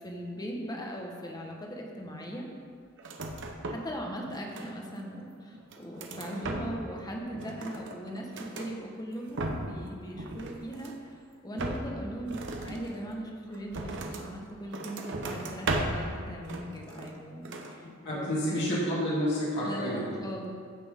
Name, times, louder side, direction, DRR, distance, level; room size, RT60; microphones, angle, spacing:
voice 1, 0.0-2.5 3.7-18.6 19.6-20.5, equal, 20° left, 0 dB, 1.2 m, -39 dB
sound 1, 3.0-4.0 4.2-5.0 5.5-7.0 7.3-8.7 9.1-9.8 10.1-11.1 11.5-14.3 14.7-16.1 16.4-17.2 17.4-17.8, right 2 dB, 60° right, 0.9 m, -36 dB
voice 2, 18.0-20.1, equal, 55° left, -7 dB, 2.9 m, -29 dB
15.5 x 6.1 x 3.7 m, 2.1 s
head